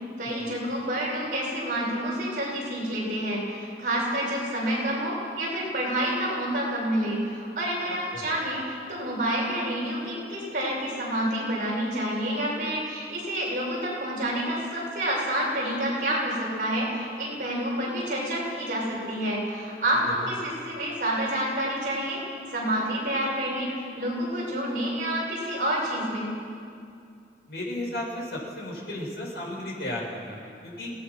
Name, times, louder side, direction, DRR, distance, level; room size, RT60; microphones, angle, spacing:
voice 1, 0.2-22.2 22.5-26.3, right 1 dB, 50° right, -5 dB, 7.7 m, -28 dB
voice 2, 7.8-8.4 20.1-20.3 27.5-30.9, left 1 dB, 70° left, -3 dB, 7.1 m, -35 dB
27.0 x 19.0 x 6.2 m, 2.4 s
head